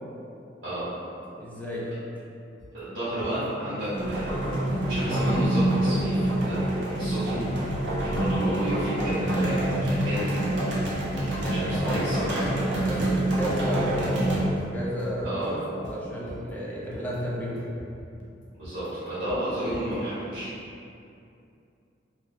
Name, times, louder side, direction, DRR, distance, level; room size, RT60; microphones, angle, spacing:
voice 1, 1.3-1.9 11.4-17.6, equal, 10° left, -6 dB, 0.4 m, -33 dB
sound 1, 2.6-20.2, equal, 75° left, 0.6 m, -46 dB
voice 2, 2.7-4.6 4.9-6.6 7.0-7.4 8.0-10.3 11.5-12.5 15.2-15.5 18.6-20.5, right 1 dB, 90° right, -14 dB, 1.2 m, -31 dB
sound 2, 3.9-14.4, right 1 dB, 70° right, 0.6 m, -26 dB
2.6 x 2.1 x 3.4 m, 2.6 s
head